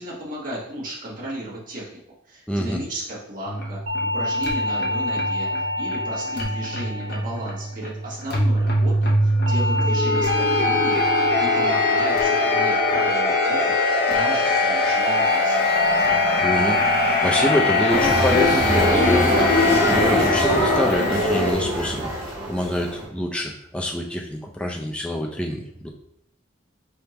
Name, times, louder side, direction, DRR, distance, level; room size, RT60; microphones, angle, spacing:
voice 1, 0.0-2.0 2.2-15.6, right 1 dB, 45° right, -7 dB, 1.4 m, -34 dB
voice 2, 2.5-2.8 16.4-25.9, equal, 5° left, 0 dB, 0.4 m, -26 dB
sound 1, 3.4-21.5, left 2 dB, 50° left, 0.8 m, -22 dB
sound 2, 3.9-8.3 9.5-13.9 15.1-15.4 15.8-16.2 16.6-17.0 17.4-17.8 18.2-18.6 19.0-19.4, left 1 dB, 90° right, 0.6 m, -28 dB
sound 3, 17.9-23.0, equal, 25° right, 1.5 m, -22 dB
4.3 x 3.5 x 2.9 m, 0.75 s
head